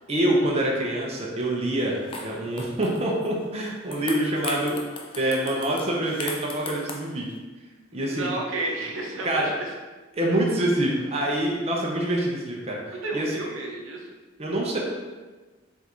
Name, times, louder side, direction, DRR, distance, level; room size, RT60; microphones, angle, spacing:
voice 1, 0.1-4.8 5.2-7.3 7.9-8.3 9.2-9.5 10.1-13.3 14.4-14.8, right 1 dB, 30° right, -2 dB, 0.6 m, -26 dB
sound 1, 1.8-1.9 2.1-3.3 3.7-7.4, left 4 dB, 25° left, 0.4 m, -38 dB
voice 2, 7.9-9.7 13.0-14.1, right 2 dB, 80° right, -1 dB, 0.7 m, -32 dB
3.5 x 2.5 x 4.4 m, 1.3 s
head